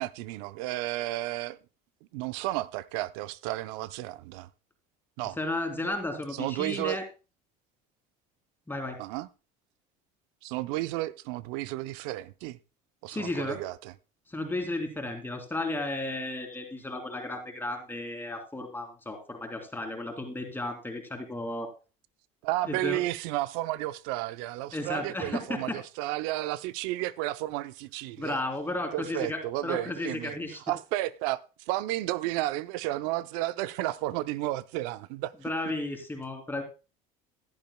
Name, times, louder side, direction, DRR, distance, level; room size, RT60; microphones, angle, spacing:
voice 1, 0.0-1.6 2.1-4.5 5.2-5.4 6.3-7.0 9.0-9.3 10.4-12.6 13.0-13.9 22.4-28.4 28.9-30.4 30.7-31.4 31.7-35.3, right 16 dB, 75° right, 0.6 m, -32 dB
voice 2, 5.4-7.0 8.7-9.0 13.1-13.6 14.3-21.7 22.6-23.0 24.7-25.8 28.2-30.6 35.4-36.6, left 2 dB, 10° left, 2.6 m, -34 dB
15.0 x 10.5 x 2.2 m
supercardioid pair, 95°, 18 cm